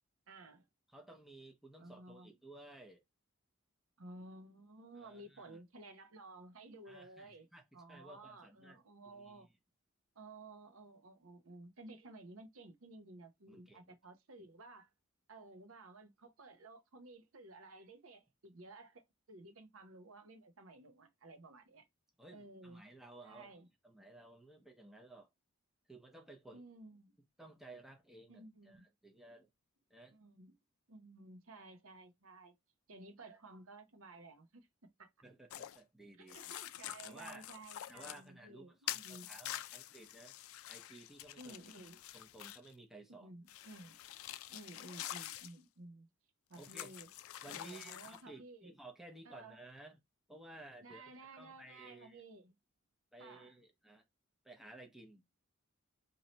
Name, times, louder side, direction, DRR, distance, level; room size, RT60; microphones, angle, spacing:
voice 1, 0.3-0.7 1.8-2.3 4.0-7.5 7.7-9.5 10.1-14.9 15.3-21.9 22.3-22.8 23.2-23.7 26.5-27.2 28.3-28.9 30.1-30.6 30.9-32.6 32.9-35.1 36.2-39.3 41.4-42.0 43.2-44.0 44.5-46.1 46.5-47.1 47.5-48.7 49.2-49.6 50.8-52.6 53.2-53.6, right 2 dB, 75° right, 0.8 m, -55 dB
voice 2, 0.9-3.0 5.0-5.6 6.9-8.8 9.1-9.4 13.5-13.9 22.2-23.5 23.8-25.3 25.9-26.6 27.4-29.5 29.9-30.2 35.2-36.4 37.0-37.4 37.9-40.3 40.7-41.5 42.1-43.3 46.6-46.9 47.4-50.0 50.3-52.2 53.1-54.0 54.4-55.2, right 1 dB, ahead, 0.6 m, -56 dB
sound 1, 35.5-35.8 36.3-38.2 38.9-42.7 43.5-45.5 46.5-48.2, left 13 dB, 75° left, 0.3 m, -47 dB
3.1 x 2.7 x 4.0 m
head